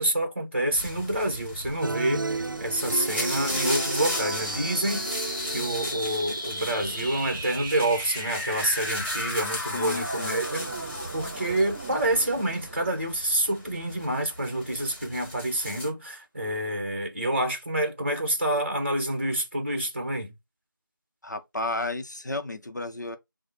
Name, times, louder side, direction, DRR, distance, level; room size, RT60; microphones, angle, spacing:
voice 1, 0.0-5.2 5.5-10.7 11.1-20.3, right 1 dB, 35° right, 0.9 m, -28 dB
sound 1, 0.7-15.9, equal, 30° left, 1.3 m, -37 dB
sound 2, 1.8-7.1, right 3 dB, 70° right, 0.5 m, -34 dB
sound 3, 3.1-14.2, equal, ahead, 0.7 m, -35 dB
voice 2, 9.7-10.4 21.2-23.2, left 2 dB, 60° left, 0.6 m, -32 dB
4.7 x 2.1 x 4.3 m
figure-of-eight pair, 175°, 11 cm